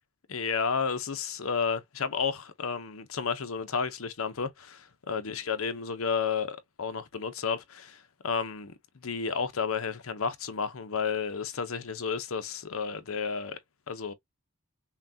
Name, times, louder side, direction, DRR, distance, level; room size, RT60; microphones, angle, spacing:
voice 1, 0.3-13.6 13.9-14.1, left 5 dB, 75° left, 0.7 m, -32 dB
5.8 x 2.3 x 2.7 m
head